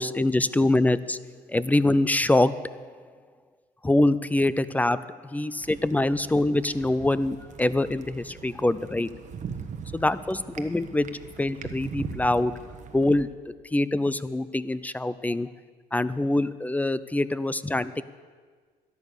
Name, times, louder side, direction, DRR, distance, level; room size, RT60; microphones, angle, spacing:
voice 1, 0.0-2.8 3.8-9.1 9.9-11.1 11.4-12.6 12.9-15.5 15.9-18.0, left 2 dB, 10° left, 16 dB, 0.4 m, -24 dB
sound 1, 5.6-13.2, right 6 dB, 45° right, 1.1 m, -41 dB
13.5 x 10.5 x 6.7 m, 1.5 s
cardioid pair, 110°, 17 cm